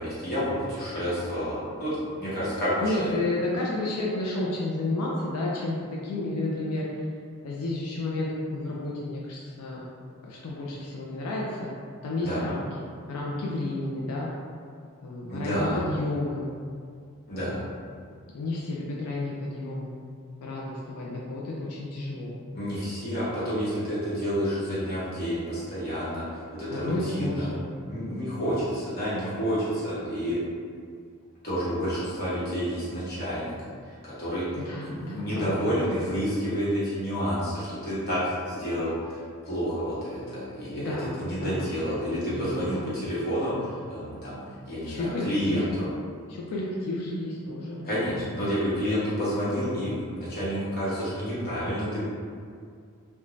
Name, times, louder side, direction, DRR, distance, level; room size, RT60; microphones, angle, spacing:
voice 1, 0.0-3.1 12.2-12.4 15.3-15.8 17.3-17.6 22.5-27.5 27.9-30.4 31.4-33.5 34.0-34.5 34.8-44.4 44.7-45.9 47.8-52.0, equal, 45° left, -11 dB, 1.0 m, -29 dB
voice 2, 2.8-7.1 7.4-9.8 10.2-11.7 12.0-14.3 15.0-16.5 17.3-17.7 18.3-20.0 20.4-22.4 26.7-27.7 34.6-35.6 40.8-41.7 42.3-42.6 44.8-45.7 46.3-47.8, left 2 dB, 90° left, -4 dB, 0.4 m, -31 dB
2.5 x 2.2 x 3.0 m, 2.2 s
head